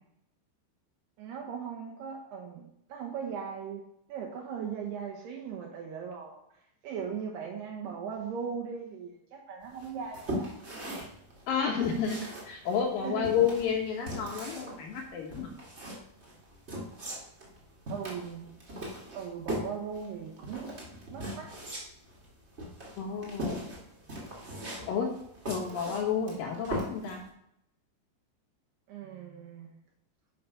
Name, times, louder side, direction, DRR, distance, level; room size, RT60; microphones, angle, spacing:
voice 1, 1.2-3.8 4.1-6.4 6.8-10.5 13.0-13.3 17.9-18.5 19.1-21.5 28.9-29.7, right 7 dB, 75° right, -1 dB, 2.8 m, -38 dB
sound 1, 9.8-27.3, equal, 55° right, 0.7 m, -39 dB
voice 2, 11.5-15.5 23.0-23.6 24.9-25.1 25.5-27.2, left 7 dB, 85° left, 1 dB, 2.0 m, -30 dB
10.5 x 5.9 x 5.6 m, 0.76 s
omnidirectional pair, 5.5 m